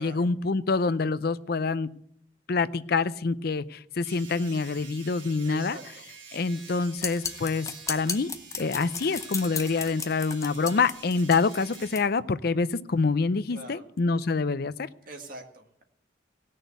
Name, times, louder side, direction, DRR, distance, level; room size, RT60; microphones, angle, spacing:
voice 1, 0.0-1.9 2.5-5.8 6.3-8.3 8.6-14.9, left 4 dB, 55° left, 15 dB, 0.5 m, -26 dB
sound 1, 4.0-12.0, right 6 dB, 85° right, 3.4 m, -47 dB
voice 2, 5.4-6.1 13.5-13.8 15.1-15.8, right 2 dB, 50° right, 3 dB, 2.0 m, -44 dB
sound 2, 7.0-12.0, left 5 dB, 15° left, 0.8 m, -35 dB
17.5 x 6.6 x 8.0 m, 0.69 s
head